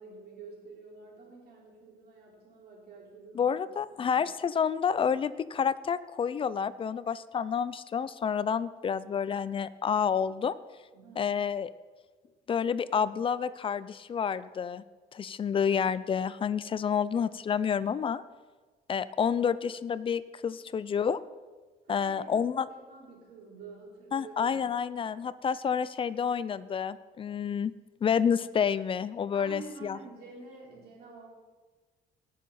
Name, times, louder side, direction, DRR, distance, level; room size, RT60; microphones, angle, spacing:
voice 1, 0.0-3.6 3.9-4.2 10.9-11.4 21.9-24.6 29.3-31.3, right 4 dB, 70° right, -4 dB, 4.2 m, -49 dB
voice 2, 3.3-10.5 11.2-11.7 12.5-14.8 15.1-18.2 18.9-21.2 21.9-22.7 24.1-27.7 28.0-30.0, left 7 dB, 30° left, 16 dB, 0.5 m, -29 dB
18.5 x 6.6 x 4.2 m, 1.3 s
cardioid pair, 110°, 17 cm